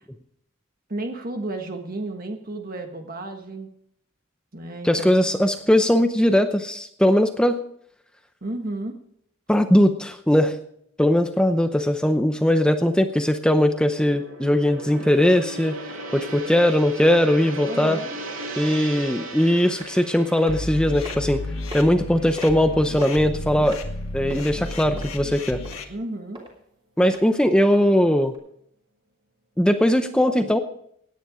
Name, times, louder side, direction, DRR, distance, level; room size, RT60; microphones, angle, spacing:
voice 1, 0.9-3.7 4.5-5.3 8.4-8.9 17.6-18.1 25.9-26.4, right 2 dB, 45° right, 4 dB, 1.5 m, -32 dB
voice 2, 4.8-7.6 9.5-10.6 11.0-15.8 16.1-18.0 18.6-21.4 21.7-23.8 24.1-25.6 27.0-28.3 29.6-30.6, left 1 dB, 5° left, 7 dB, 0.7 m, -20 dB
Gong, 11.9-23.9 24.3-24.5, right 2 dB, 75° right, 2.7 m, -38 dB
sound 1, 19.8-20.0 20.4-20.6 21.0-21.4 21.7-21.8 22.4-22.6 23.0-23.3 23.7-24.4 25.0-25.3 25.6-25.8 26.3-26.5 27.0-27.2 27.7-27.9 28.3-28.4, right 1 dB, 25° right, 3.3 m, -37 dB
sound 2, 20.5-25.8, left 2 dB, 80° left, 1.8 m, -32 dB
17.0 x 10.0 x 5.0 m, 0.69 s
head